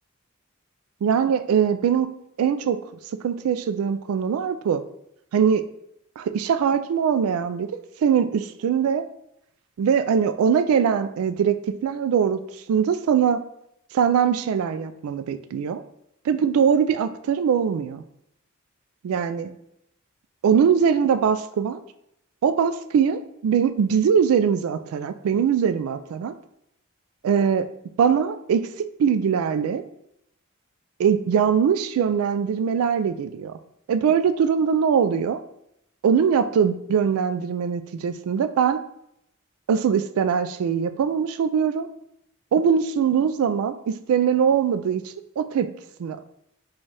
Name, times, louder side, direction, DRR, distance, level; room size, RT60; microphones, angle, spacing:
voice 1, 1.0-2.8 3.2-4.8 5.3-5.6 6.2-9.0 9.8-12.4 12.7-13.4 13.9-15.8 16.3-18.0 19.0-19.5 20.4-21.8 22.4-26.3 27.2-27.7 28.0-28.7 29.0-29.8 31.0-33.6 33.9-35.4 36.0-38.8 39.7-41.9 42.5-45.7 46.0-46.2, right 7 dB, 80° right, 14 dB, 0.3 m, -22 dB
4.1 x 2.3 x 3.1 m, 0.76 s
head